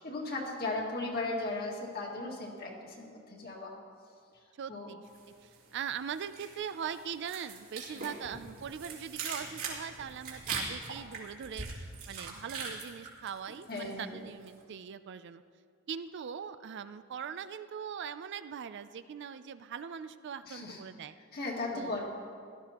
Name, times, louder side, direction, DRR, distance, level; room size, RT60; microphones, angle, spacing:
voice 1, 0.0-3.7 4.7-4.9 8.0-8.1 13.7-14.2 20.4-20.8 21.3-22.1, left 2 dB, 50° left, -2 dB, 2.0 m, -37 dB
voice 2, 4.6-5.0 5.4-15.4 15.9-21.1 21.7-22.0, right 7 dB, 55° right, 12 dB, 0.4 m, -41 dB
sound 1, 5.1-5.8 6.1-14.0 14.3-14.6, right 4 dB, 70° right, 2.6 m, -41 dB
16.5 x 12.5 x 2.9 m, 2.2 s
head